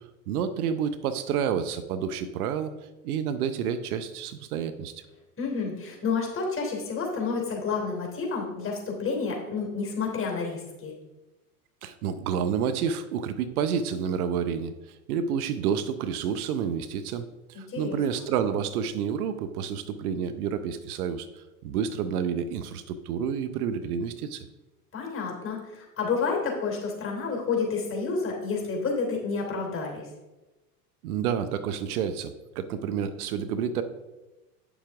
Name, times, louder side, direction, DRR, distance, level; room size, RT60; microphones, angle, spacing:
voice 1, 0.3-2.7 3.0-4.9 11.8-14.7 15.1-24.5 31.0-33.8, right 7 dB, 70° right, 11 dB, 0.8 m, -29 dB
voice 2, 5.4-10.9 17.7-18.0 24.9-30.0, left 4 dB, 25° left, 0 dB, 3.1 m, -30 dB
8.7 x 7.0 x 3.6 m, 1.1 s
hypercardioid pair, 95°, 46 cm